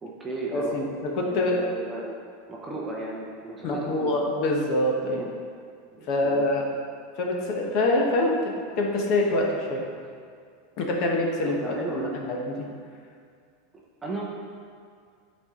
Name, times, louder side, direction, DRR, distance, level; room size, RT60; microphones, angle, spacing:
voice 1, 0.0-2.2 2.5-4.1 5.0-5.3 5.9-6.4 11.4-12.1 14.0-14.2, right 2 dB, 10° right, -3 dB, 0.7 m, -35 dB
voice 2, 0.5-1.6 3.6-5.2 6.1-6.7 7.2-9.8 10.8-12.6, left 1 dB, 35° left, 0 dB, 1.0 m, -25 dB
11.5 x 4.3 x 3.7 m, 2.2 s
supercardioid pair, 180°, 0 cm